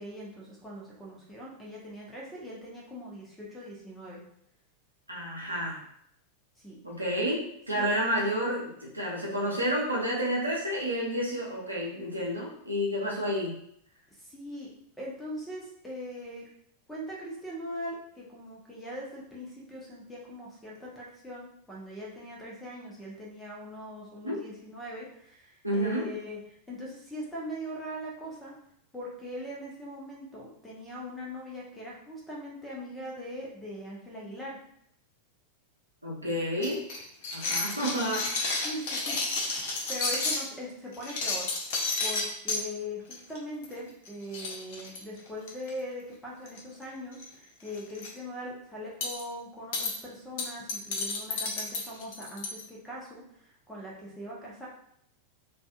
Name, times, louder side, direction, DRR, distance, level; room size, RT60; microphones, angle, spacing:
voice 1, 0.0-4.2 6.6-6.8 7.7-7.9 14.2-14.7 15.0-16.5 16.9-28.5 28.9-34.6 38.6-39.2 39.9-54.7, equal, 5° left, -4 dB, 0.8 m, -41 dB
voice 2, 5.1-5.8 6.8-13.6 24.2-24.4 25.6-26.1 36.0-36.8 37.3-38.6, equal, 85° right, -4 dB, 0.7 m, -30 dB
sound 1, 36.6-40.4 40.9-42.6 43.1-43.4 43.6-43.8 44.0-44.1 44.3-45.7 46.5-46.8 47.1-47.3 47.7-48.1 49.0-49.2 49.7-49.9 50.4-52.6, left 3 dB, 50° left, 0.6 m, -31 dB
2.5 x 2.4 x 2.4 m, 0.70 s
figure-of-eight pair, 90°, 0 cm